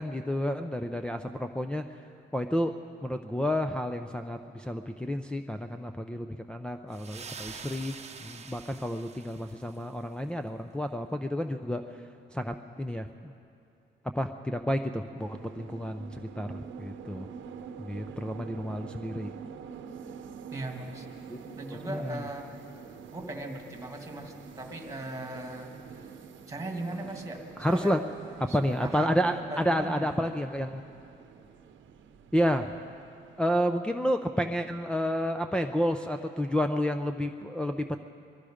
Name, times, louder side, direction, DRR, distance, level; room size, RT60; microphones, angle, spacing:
voice 1, 0.0-1.8 2.3-2.7 3.0-8.0 8.2-11.8 12.3-13.3 14.2-17.3 17.8-19.3 21.3-21.4 21.7-22.2 27.6-28.0 28.4-30.8 32.3-32.7 33.4-38.0, equal, 5° left, 3 dB, 0.5 m, -30 dB
sound 1, 6.9-9.9, right 5 dB, 35° right, 0.9 m, -45 dB
sound 2, 15.2-33.6, right 6 dB, 75° right, 0.9 m, -46 dB
voice 2, 20.5-21.1 21.6-22.5 23.1-25.7 26.5-28.0 28.4-30.1, right 1 dB, 15° right, 3 dB, 2.0 m, -38 dB
21.5 x 13.0 x 5.0 m, 2.6 s
cardioid pair, 90°, 20 cm